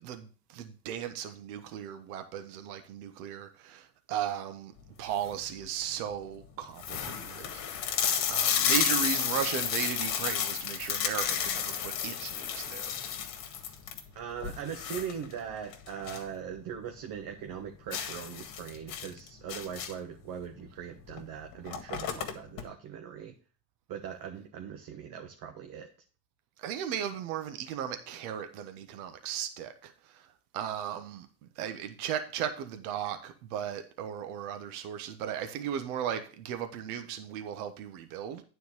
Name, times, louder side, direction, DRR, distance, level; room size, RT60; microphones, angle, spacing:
voice 1, 0.0-4.7 5.0-7.9 8.3-13.0 26.6-30.3 30.5-31.3 31.6-38.4, right 9 dB, 65° right, 1.4 m, -36 dB
sound 1, 4.9-5.4 6.1-6.2 6.4-6.5 6.8-16.3 16.7-16.8 17.2-17.3 17.9-20.1 21.1-21.2 21.5-22.6, left 9 dB, 45° left, 1.9 m, -32 dB
voice 2, 14.1-23.3 23.9-25.9, right 8 dB, 45° right, 1.4 m, -40 dB
9.5 x 4.5 x 6.7 m
hypercardioid pair, 90°, 48 cm